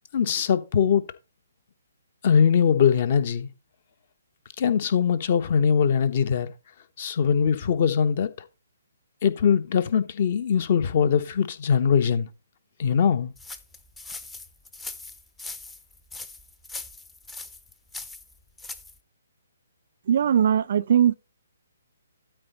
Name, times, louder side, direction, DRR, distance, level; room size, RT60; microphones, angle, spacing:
voice 1, 0.1-1.0 2.2-3.5 4.6-6.5 7.0-8.3 9.2-12.3 12.8-13.3, left 7 dB, 40° left, 0.9 m, -21 dB
sound 1, 13.4-19.0, left 3 dB, 5° left, 0.6 m, -40 dB
voice 2, 20.1-21.1, right 9 dB, 45° right, 0.4 m, -20 dB
12.5 x 4.6 x 4.1 m
figure-of-eight pair, 130°, 0 cm